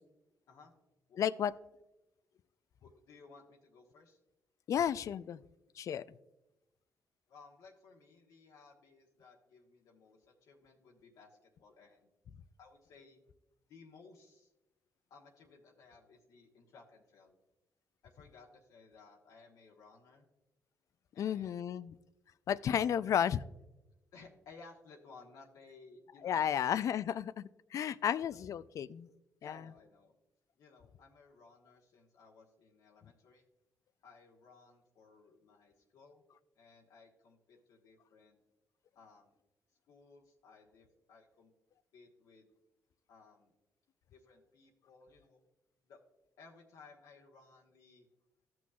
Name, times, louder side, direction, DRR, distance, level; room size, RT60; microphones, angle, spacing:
voice 1, 1.2-1.5 4.7-5.4 5.8-6.0 21.2-21.9 22.5-23.4 26.2-29.1 29.4-29.5, left 9 dB, 60° left, 17 dB, 0.3 m, -33 dB
voice 2, 2.8-4.2 7.3-12.1 12.6-13.2 13.7-14.5 15.1-17.4 18.0-20.3 21.1-21.5 24.1-26.6 28.3-28.5 29.4-30.2 30.6-33.5 34.0-36.2 36.5-38.4 38.9-39.3 39.9-41.5 41.9-42.5 43.1-43.5 44.1-45.4 45.8-46.0 46.4-48.1, left 4 dB, 85° left, -1 dB, 1.2 m, -59 dB
14.5 x 6.1 x 2.4 m, 0.96 s
supercardioid pair, 65°, 6 cm